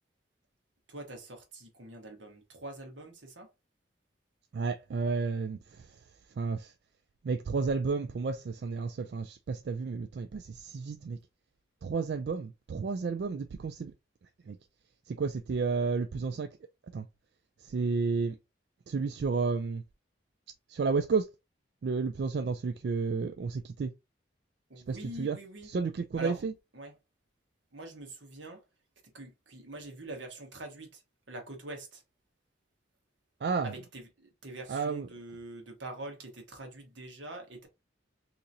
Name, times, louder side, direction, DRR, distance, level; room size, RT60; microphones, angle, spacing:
voice 1, 0.9-3.5 24.7-25.7 26.2-26.4 26.7-26.9 27.7-28.6 29.1-31.0 31.3-32.0 33.6-37.7, right 1 dB, 80° right, 1.3 m, -44 dB
voice 2, 4.5-6.8 7.2-11.2 11.8-13.9 14.2-14.6 15.0-16.6 16.9-17.1 17.6-18.4 18.9-19.8 20.7-21.3 21.8-23.9 24.7-25.4 25.6-26.5 33.4-33.7 34.7-35.1, right 4 dB, 60° right, 0.3 m, -32 dB
3.8 x 2.9 x 2.7 m
head